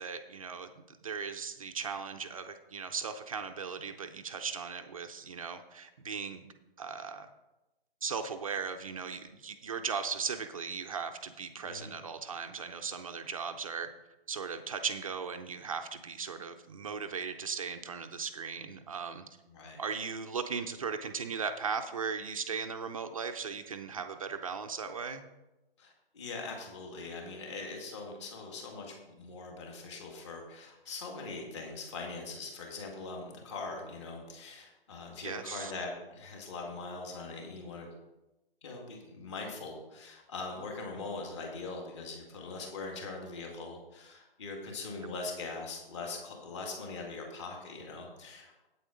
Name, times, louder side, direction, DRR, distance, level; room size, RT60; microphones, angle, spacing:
voice 1, 0.0-6.4 6.8-7.3 8.0-13.9 14.3-19.3 19.8-25.3 35.2-35.7, right 6 dB, 35° right, 7 dB, 0.6 m, -37 dB
voice 2, 19.5-19.8 25.8-37.9 38.6-48.7, left 3 dB, 30° left, 1 dB, 2.1 m, -42 dB
8.6 x 8.3 x 5.0 m, 1.0 s
hypercardioid pair, 160°, 30 cm